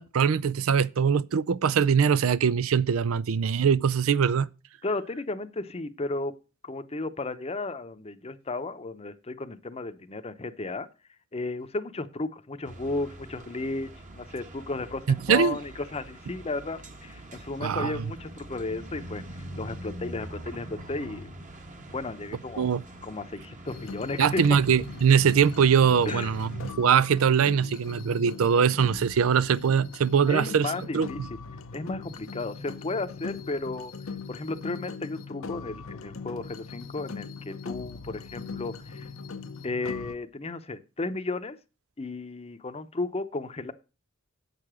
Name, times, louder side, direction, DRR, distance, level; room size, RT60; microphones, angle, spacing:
voice 1, 0.0-4.5 15.1-15.6 17.6-17.9 22.6-22.8 24.2-31.1, right 7 dB, 85° right, 0.4 m, -22 dB
voice 2, 4.8-6.3 6.6-10.9 11.3-19.2 19.6-21.3 21.9-22.7 23.0-24.6 26.1-26.3 30.3-31.4 31.7-33.9 34.3-39.1 39.6-41.6 42.0-43.7, left 2 dB, 30° left, 0.7 m, -34 dB
sound 1, 12.6-26.8, right 1 dB, 40° right, 1.2 m, -44 dB
sound 2, 23.7-40.1, left 4 dB, 75° left, 0.7 m, -40 dB
8.2 x 6.8 x 6.0 m
head